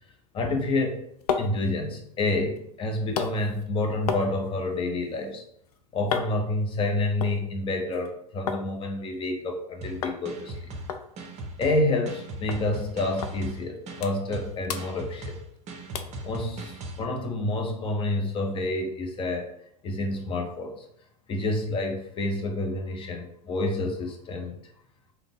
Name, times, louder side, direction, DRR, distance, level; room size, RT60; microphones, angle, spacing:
voice 1, 0.3-1.0 1.4-5.4 5.9-10.7 11.6-15.4 16.2-19.5 19.8-20.7 21.3-24.5, left 2 dB, 25° left, 3 dB, 0.7 m, -28 dB
sound 1, 0.8-8.7 9.0-9.6 10.0-10.2 10.5-10.6 10.9-12.2 12.5-12.6 13.2-13.4 13.7-14.4 14.6-15.6 15.9-16.2 16.7-16.8, left 6 dB, 70° left, 0.4 m, -35 dB
sound 2, 9.8-17.0, right 1 dB, 35° right, 0.6 m, -39 dB
3.6 x 2.2 x 3.6 m, 0.72 s
figure-of-eight pair, 90°, 20 cm